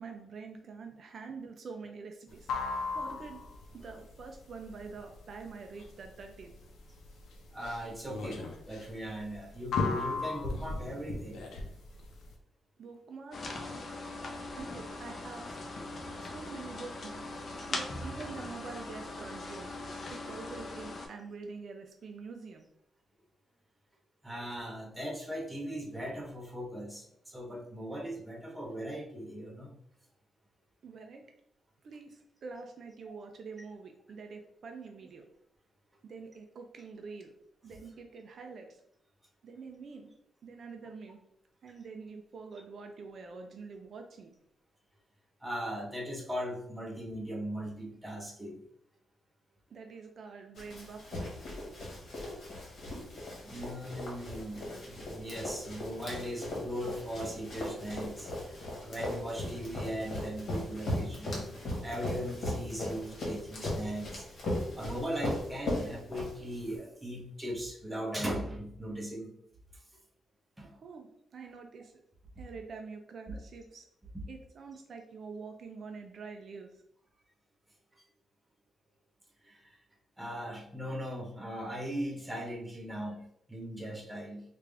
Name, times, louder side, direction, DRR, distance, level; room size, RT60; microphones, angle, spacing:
voice 1, 0.0-2.5 2.9-3.4 3.7-6.5 12.8-13.4 14.6-15.6 16.2-19.7 20.1-22.7 30.8-31.2 31.8-35.2 36.0-37.3 37.6-38.8 39.4-40.1 40.4-41.2 41.6-44.3 49.7-51.4 70.6-72.0 72.4-73.9 74.3-76.8, right 4 dB, 55° right, 4 dB, 0.4 m, -46 dB
sound 1, 2.3-12.3, left 3 dB, 90° left, 0.6 m, -36 dB
voice 2, 7.5-11.4 24.2-29.7 45.4-48.6 53.4-61.5 61.8-64.4 64.7-69.3 69.7-69.8 70.6-70.7 73.3-73.4 79.4-79.8 80.2-84.4, equal, 10° right, -1 dB, 0.8 m, -39 dB
sound 2, 13.3-21.1, left 2 dB, 45° left, 0.6 m, -40 dB
Run, 50.6-66.7, left 1 dB, 60° left, 1.4 m, -38 dB
3.3 x 2.5 x 3.4 m, 0.70 s
cardioid pair, 120°, 0 cm